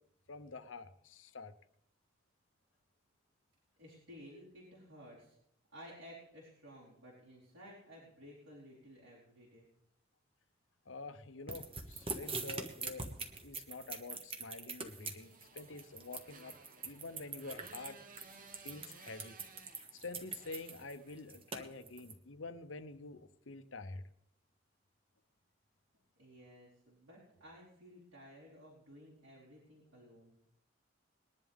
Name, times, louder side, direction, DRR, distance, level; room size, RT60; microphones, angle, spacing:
voice 1, 0.3-1.5 10.9-13.0 13.4-16.5 16.8-18.0 18.6-19.4 19.9-24.0, left 3 dB, 80° left, 12 dB, 0.9 m, -47 dB
voice 2, 3.8-5.4 5.7-9.7 26.2-30.3, equal, 90° right, -8 dB, 4.4 m, -55 dB
sound 1, 11.5-22.1, right 4 dB, 30° right, 1.2 m, -43 dB
Motorcycle, 14.8-21.5, right 4 dB, 45° right, 1.2 m, -58 dB
21.0 x 11.0 x 3.6 m, 0.75 s
head